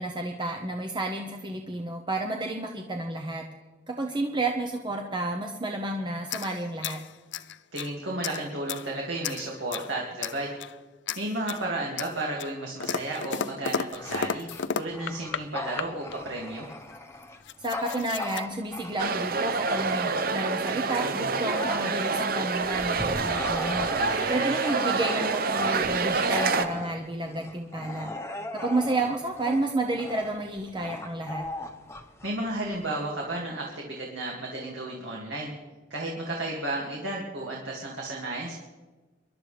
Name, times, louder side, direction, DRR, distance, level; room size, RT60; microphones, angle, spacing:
voice 1, 0.0-3.5 3.9-7.0 17.6-23.9 24.3-28.1 28.5-31.5, right 2 dB, 25° right, 2 dB, 0.9 m, -31 dB
sound 1, 6.2-7.9 8.2-8.9 9.2-9.9 10.2-10.8 11.1-11.7 12.0-15.4 15.8-16.2 16.9-17.0 17.2-18.4, left 7 dB, 70° left, 0.5 m, -34 dB
voice 2, 7.7-10.5 11.2-16.7 23.9-24.6 32.2-35.5 35.9-38.5, right 2 dB, 80° right, -2 dB, 2.3 m, -33 dB
Bark / Growling, 14.0-20.5 21.0-32.9, left 2 dB, 15° left, 1.1 m, -38 dB
sound 2, 19.0-26.7, right 4 dB, 50° right, 0.7 m, -27 dB
25.5 x 12.0 x 3.4 m, 1.3 s
head